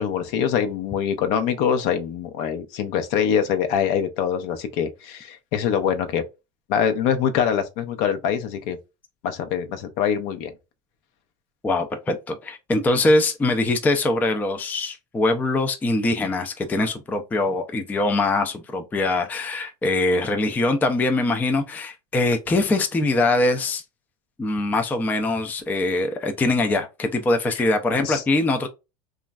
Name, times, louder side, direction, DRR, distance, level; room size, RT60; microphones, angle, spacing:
voice 1, 0.0-6.2 6.7-8.8 9.2-10.5 27.6-27.7 28.0-28.2, left 8 dB, 65° left, 0.7 m, -24 dB
voice 2, 11.6-23.8 24.4-28.7, left 2 dB, 10° left, 0.3 m, -22 dB
3.0 x 2.4 x 2.2 m
supercardioid pair, 135°, 18 cm